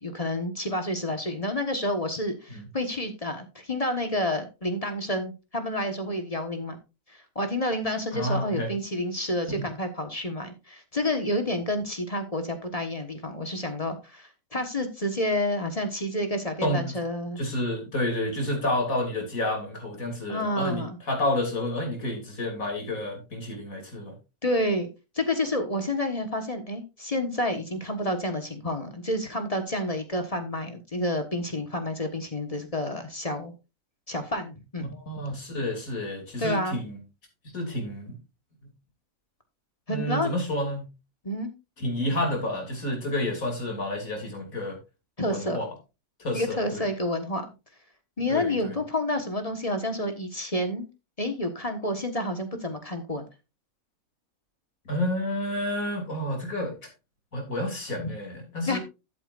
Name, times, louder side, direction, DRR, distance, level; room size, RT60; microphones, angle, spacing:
voice 1, 0.0-6.8 7.1-17.4 20.3-21.0 24.4-24.9 25.1-33.5 34.1-34.9 36.4-36.8 39.9-40.3 41.2-41.5 45.2-45.6 46.3-47.5 48.2-50.9 51.2-53.3 58.7-58.8, left 1 dB, 25° left, 7 dB, 1.4 m, -29 dB
voice 2, 8.1-8.7 16.6-16.9 17.4-24.1 34.9-37.0 37.5-38.2 39.9-40.8 41.8-44.8 45.3-45.7 46.2-46.8 48.3-48.7 54.8-56.7 57.3-58.8, left 1 dB, 70° left, 2 dB, 3.3 m, -30 dB
12.5 x 8.5 x 2.5 m, 0.27 s
omnidirectional pair, 1.5 m